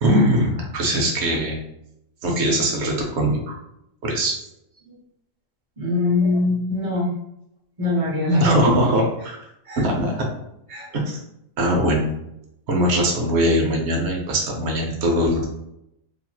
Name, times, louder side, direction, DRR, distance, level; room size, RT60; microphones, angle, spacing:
voice 1, 0.0-1.6 2.2-3.5 4.0-4.4 8.4-9.4 9.8-10.3 10.9-11.2 11.6-12.1 12.7-15.4, equal, 60° right, 0 dB, 0.9 m, -21 dB
voice 2, 5.8-7.1 7.8-8.7 9.7-9.8 10.7-10.9, left 2 dB, 30° right, -3 dB, 0.7 m, -21 dB
2.9 x 2.8 x 2.2 m, 0.81 s
omnidirectional pair, 1.5 m